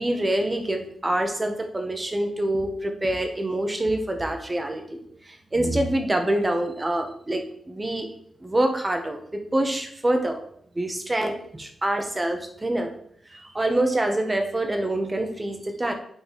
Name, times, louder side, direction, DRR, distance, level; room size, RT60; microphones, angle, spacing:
voice 1, 0.0-8.1 8.4-10.4 10.7-12.9 13.3-15.9, right 1 dB, 15° right, 5 dB, 1.0 m, -26 dB
9.0 x 5.2 x 3.6 m, 0.68 s
wide cardioid pair, 155°, 0 cm